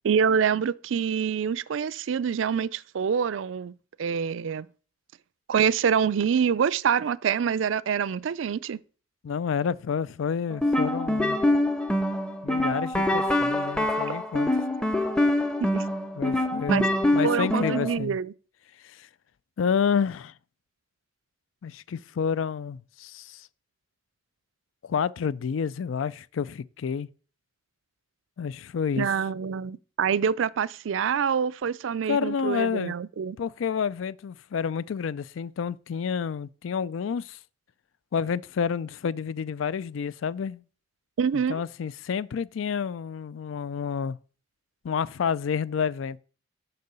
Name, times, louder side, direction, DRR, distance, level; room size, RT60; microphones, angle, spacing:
voice 1, 0.0-4.7 5.5-8.8 15.6-15.9 16.7-16.9 17.2-18.3 29.0-33.4 41.2-41.6, right 7 dB, 80° right, 0.4 m, -26 dB
voice 2, 9.2-11.4 12.4-14.5 16.2-16.8 17.1-18.2 18.8-19.1 19.6-20.3 21.6-23.5 24.8-27.1 28.4-29.1 32.1-32.9 33.4-37.4 38.1-40.6 41.5-44.2 44.8-46.2, left 6 dB, 90° left, 0.4 m, -29 dB
sound 1, 10.5-18.0, left 1 dB, 5° left, 0.6 m, -25 dB
6.7 x 5.5 x 6.8 m
head